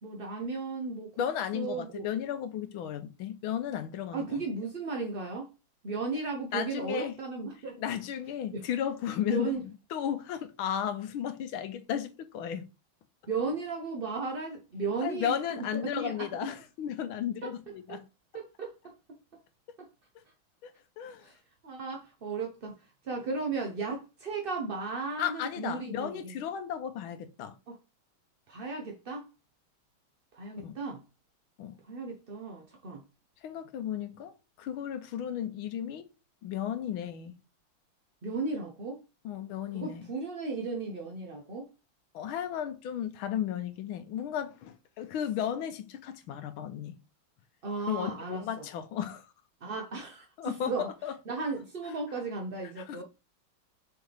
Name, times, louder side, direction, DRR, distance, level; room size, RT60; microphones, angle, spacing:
voice 1, 0.0-1.1 1.5-2.1 4.1-5.5 5.8-7.8 8.5-8.7 9.2-9.6 13.3-16.5 17.4-17.5 17.9-18.0 18.3-18.7 19.8-19.9 21.2-21.4 21.6-22.7 23.0-26.3 27.7-27.8 28.5-29.3 30.3-31.0 31.8-33.0 38.2-39.0 39.7-41.7 47.6-48.6 49.6-50.9 51.3-53.0, right 4 dB, 45° right, 0.7 m, -35 dB
voice 2, 1.2-4.4 6.5-7.2 7.8-9.5 9.9-12.6 15.0-18.0 20.6-21.3 25.2-27.5 30.6-30.7 31.6-31.8 33.4-36.1 36.4-37.4 39.2-40.1 42.1-47.0 47.9-49.3 50.4-51.2 52.8-53.0, left 9 dB, 90° left, 1.6 m, -34 dB
6.4 x 4.7 x 3.4 m
omnidirectional pair, 2.2 m